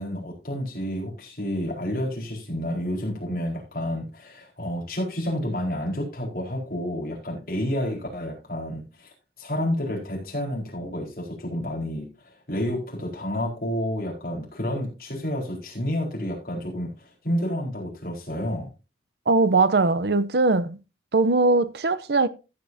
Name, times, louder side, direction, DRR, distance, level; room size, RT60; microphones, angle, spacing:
voice 1, 0.0-9.1 9.4-18.7, equal, 55° left, 4.5 m, -30 dB
voice 2, 19.3-20.8 21.1-22.3, right 3 dB, 70° right, 0.7 m, -20 dB
14.5 x 8.6 x 2.7 m
head